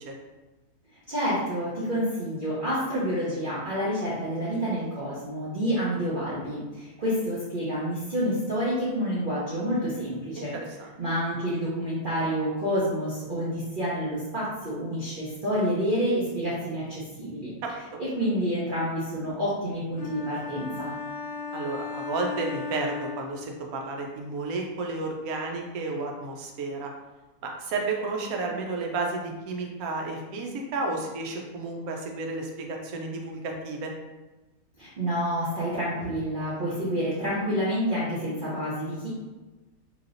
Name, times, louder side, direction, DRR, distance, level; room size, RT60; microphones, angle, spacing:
voice 1, 1.1-10.6 11.0-17.5 18.0-20.9 34.8-39.1, equal, 45° right, -9 dB, 0.7 m, -28 dB
voice 2, 10.3-10.9 17.6-17.7 21.5-26.9 27.4-33.9, right 3 dB, 80° right, 1 dB, 1.1 m, -32 dB
sound 1, 20.0-23.9, left 5 dB, 60° left, 0.8 m, -36 dB
3.2 x 2.8 x 2.5 m, 1.1 s
omnidirectional pair, 1.5 m